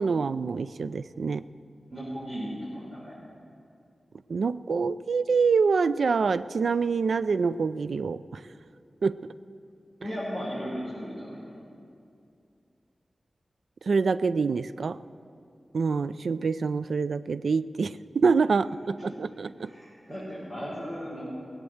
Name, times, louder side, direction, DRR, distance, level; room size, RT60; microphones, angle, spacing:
voice 1, 0.0-1.4 4.3-8.4 9.0-9.2 13.9-15.0 15.7-19.7, right 5 dB, 85° right, 15 dB, 0.3 m, -26 dB
voice 2, 1.9-3.2 10.0-11.5 19.6-21.2, equal, 35° right, -9 dB, 4.6 m, -36 dB
17.5 x 8.3 x 7.9 m, 2.5 s
wide cardioid pair, 110°, 0 cm